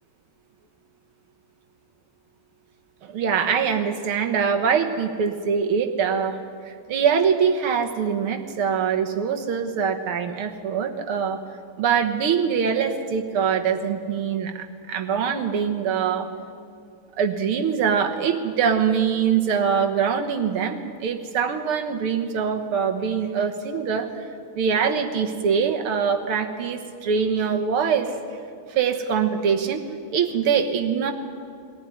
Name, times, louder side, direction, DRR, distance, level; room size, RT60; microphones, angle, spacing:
voice 1, 3.0-6.4 6.6-11.4 11.8-16.3 17.2-24.1 24.6-28.1 28.7-29.8 30.1-31.1, right 7 dB, 75° right, 5 dB, 2.1 m, -23 dB
21.5 x 14.5 x 10.0 m, 2.3 s
omnidirectional pair, 2.4 m